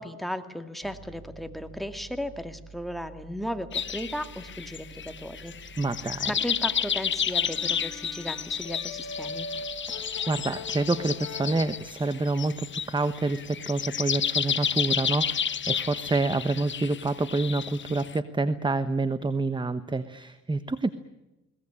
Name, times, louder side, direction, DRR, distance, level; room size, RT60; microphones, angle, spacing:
voice 1, 0.0-5.7 6.3-9.5, equal, ahead, 8 dB, 2.3 m, -36 dB
Piano, 0.8-12.1, right 5 dB, 50° right, 4.0 m, -51 dB
sound 1, 3.7-18.2, left 8 dB, 40° left, 0.9 m, -31 dB
voice 2, 5.8-6.3 9.9-20.9, right 3 dB, 15° right, 12 dB, 1.1 m, -28 dB
Brass instrument, 6.2-11.7, left 2 dB, 60° left, 4.3 m, -41 dB
21.5 x 19.5 x 9.9 m, 0.98 s
cardioid pair, 90°, 30 cm